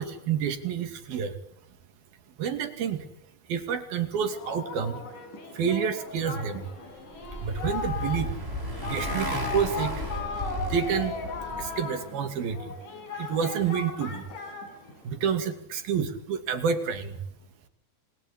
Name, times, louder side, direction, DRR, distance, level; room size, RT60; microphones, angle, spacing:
voice 1, 0.0-1.4 2.4-3.1 3.5-5.0 5.5-6.7 7.4-8.3 8.8-9.9 10.7-11.2 11.6-12.8 13.2-14.3 14.7-14.8 15.0-17.2, right 7 dB, 80° right, 8 dB, 4.4 m, -29 dB
Singing, 4.2-15.2, left 5 dB, 60° left, 7.2 m, -37 dB
Motorcycle, 6.7-11.8, equal, 15° right, 6.0 m, -34 dB
30.0 x 22.5 x 8.7 m, 0.80 s
omnidirectional pair, 4.2 m